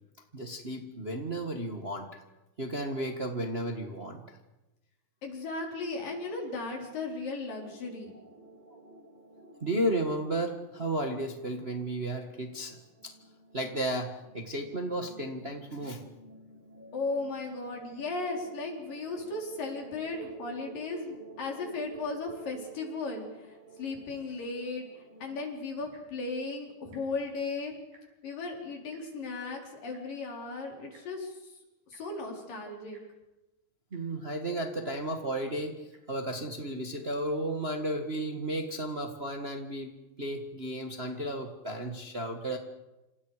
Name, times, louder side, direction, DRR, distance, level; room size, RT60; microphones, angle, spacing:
voice 1, 0.3-2.2 2.6-4.4 9.6-12.8 13.0-13.1 13.5-16.0 33.9-39.9 40.2-42.6, right 1 dB, 60° right, 3 dB, 0.6 m, -33 dB
voice 2, 5.2-8.2 16.9-27.7 28.2-31.6 31.9-33.0, left 3 dB, 65° left, 1 dB, 5.8 m, -36 dB
sound 1, 7.5-25.4, right 3 dB, 15° right, 1.8 m, -52 dB
Tick-tock, 25.8-26.2 26.8-27.0 27.3-27.5 27.8-28.3 28.9-29.0 29.9-30.0 30.9-31.1 31.9-32.0 32.9-33.0 33.6-33.7 33.9-34.2 34.9-35.0 35.9-36.0 36.8-37.0 37.7-37.8, right 3 dB, 85° right, 6.5 m, -60 dB
28.0 x 27.5 x 5.0 m, 1.0 s
omnidirectional pair, 4.2 m